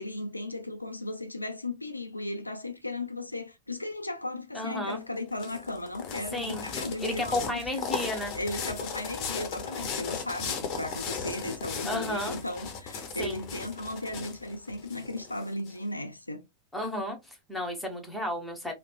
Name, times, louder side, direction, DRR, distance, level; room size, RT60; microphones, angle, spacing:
voice 1, 0.0-7.8 8.3-16.4, left 2 dB, 85° left, 0.3 m, -36 dB
voice 2, 4.5-5.0 6.3-6.6 7.0-8.3 11.8-12.4 13.2-13.4 16.7-18.7, left 1 dB, 5° left, 0.9 m, -32 dB
sound 1, 4.9-15.7, left 6 dB, 40° left, 0.7 m, -37 dB
3.2 x 2.1 x 2.2 m
figure-of-eight pair, 90°, 0 cm